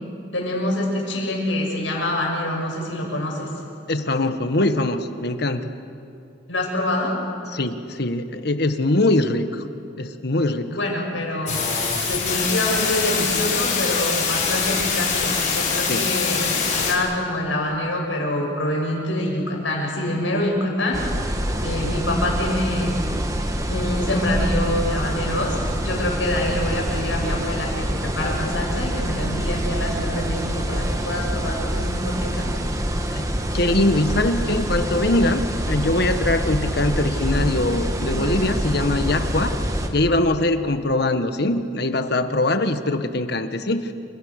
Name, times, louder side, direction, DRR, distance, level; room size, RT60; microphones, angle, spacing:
voice 1, 0.3-3.5 6.5-7.1 10.7-11.6 12.1-21.0 21.6-23.0 23.7-25.6 25.8-32.6, left 1 dB, 85° left, -1 dB, 7.4 m, -25 dB
voice 2, 3.9-5.7 7.5-9.6 10.0-10.8 15.9-16.1 33.1-33.3 33.5-39.6 39.9-43.9, left 2 dB, 60° left, 8 dB, 1.5 m, -22 dB
sound 1, 11.5-16.9, left 5 dB, 40° left, 5.9 m, -23 dB
sound 2, 20.9-39.9, equal, 20° right, 1.8 m, -26 dB
29.5 x 26.5 x 6.7 m, 2.5 s
head